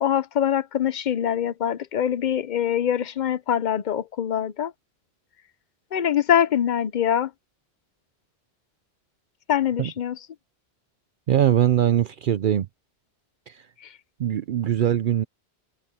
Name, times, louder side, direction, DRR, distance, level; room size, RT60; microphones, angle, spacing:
voice 1, 0.0-4.7 5.9-7.3 9.5-10.3 13.8-13.9, left 9 dB, 50° left, 0.7 m, -24 dB
voice 2, 11.3-12.7 13.5-13.6 14.2-15.2, right 11 dB, 60° right, 0.6 m, -21 dB
omnidirectional pair, 1.1 m